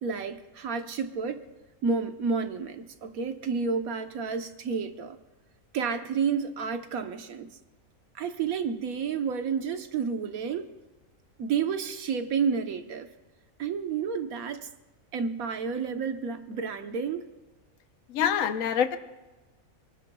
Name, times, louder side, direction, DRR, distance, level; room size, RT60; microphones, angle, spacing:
voice 1, 0.0-1.4 1.8-5.2 5.7-7.5 8.1-10.7 11.4-13.1 13.6-14.7 15.1-17.3, right 5 dB, 90° right, 7 dB, 1.4 m, -30 dB
voice 2, 18.1-19.0, left 8 dB, 75° left, 9 dB, 1.2 m, -25 dB
28.0 x 19.0 x 2.3 m, 1.1 s
omnidirectional pair, 1.4 m